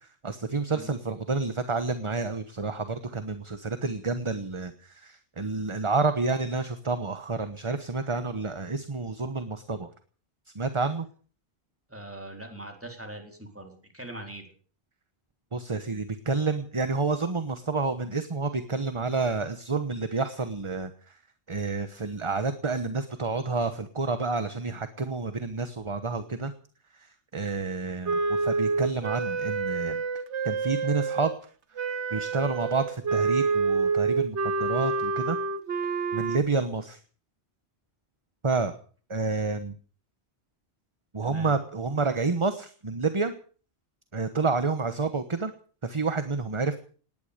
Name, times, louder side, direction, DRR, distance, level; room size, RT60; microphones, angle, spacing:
voice 1, 0.2-9.9 10.5-11.1 15.5-21.2 21.5-26.5 26.9-27.1 27.3-30.0 30.4-31.3 31.8-35.4 36.1-37.0 38.4-38.7 39.1-39.7 41.1-43.3 44.1-45.5 45.8-46.8, right 4 dB, 30° right, 10 dB, 1.1 m, -29 dB
voice 2, 11.9-14.5 41.2-41.6, right 1 dB, 10° right, 3 dB, 3.9 m, -42 dB
Wind instrument woodwind instrument, 28.1-31.4 31.8-36.4, right 4 dB, 85° right, 1.4 m, -28 dB
18.5 x 11.0 x 6.7 m, 0.44 s
omnidirectional pair, 1.1 m